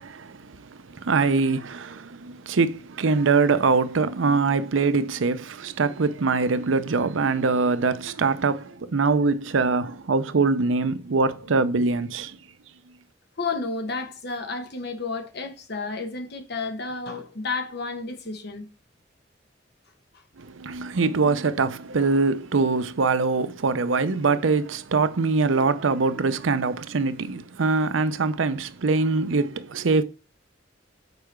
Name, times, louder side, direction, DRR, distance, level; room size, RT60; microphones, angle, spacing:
voice 1, 0.0-0.6 0.9-12.4 20.4-30.0, right 4 dB, 80° right, 0.6 m, -23 dB
voice 2, 13.4-18.7, left 3 dB, 60° left, 1.2 m, -31 dB
6.8 x 4.8 x 4.6 m
head